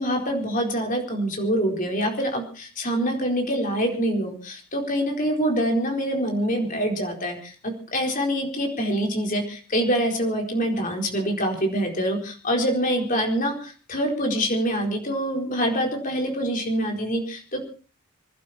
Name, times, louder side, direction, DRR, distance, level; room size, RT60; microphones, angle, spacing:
voice 1, 0.0-17.6, equal, 35° left, 2 dB, 4.4 m, -25 dB
26.0 x 12.0 x 4.3 m, 0.37 s
head